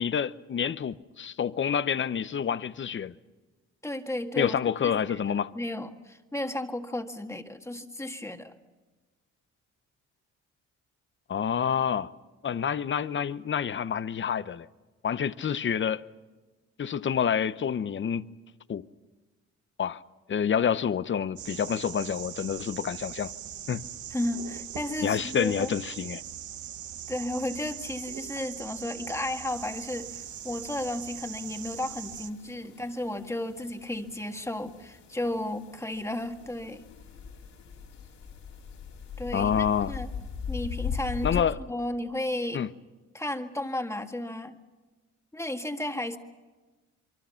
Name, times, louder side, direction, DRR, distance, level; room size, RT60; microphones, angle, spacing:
voice 1, 0.0-3.1 4.4-5.5 11.3-12.1 12.4-14.7 15.0-16.0 16.8-18.2 18.7-18.9 19.8-20.0 20.3-23.3 23.7-23.8 25.0-26.2 39.3-39.9 41.2-41.6 42.5-42.7, left 8 dB, 40° left, 0.8 m, -28 dB
voice 2, 3.8-4.5 4.8-5.2 5.5-8.5 24.1-25.7 27.1-36.8 39.2-40.1 40.5-41.4 41.7-42.7 43.1-44.6 45.3-46.2, left 1 dB, 10° left, 1.8 m, -33 dB
sound 1, 21.4-32.3, right 10 dB, 75° right, 1.3 m, -41 dB
sound 2, 29.5-41.4, left 6 dB, 65° left, 4.0 m, -40 dB
26.5 x 24.0 x 5.8 m
cardioid pair, 90°, 30 cm